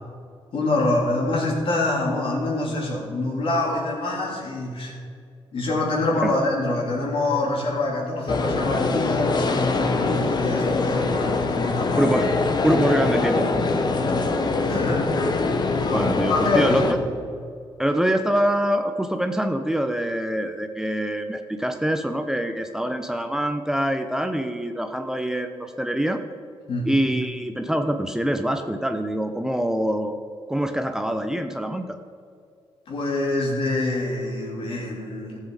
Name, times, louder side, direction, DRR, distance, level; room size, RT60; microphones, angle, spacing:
voice 1, 0.5-5.0 5.5-12.1 14.1-14.3 14.6-17.1 26.7-27.0 32.9-35.4, left 2 dB, 65° left, -2 dB, 3.3 m, -26 dB
sound 1, 8.3-16.9, left 3 dB, 45° left, 1.1 m, -23 dB
voice 2, 12.0-12.3 12.6-13.6 15.9-17.0 17.8-26.2 26.9-30.2 30.5-31.8, right 1 dB, 5° right, 6 dB, 0.7 m, -24 dB
14.5 x 7.6 x 4.9 m, 2.2 s
cardioid pair, 80°, 10 cm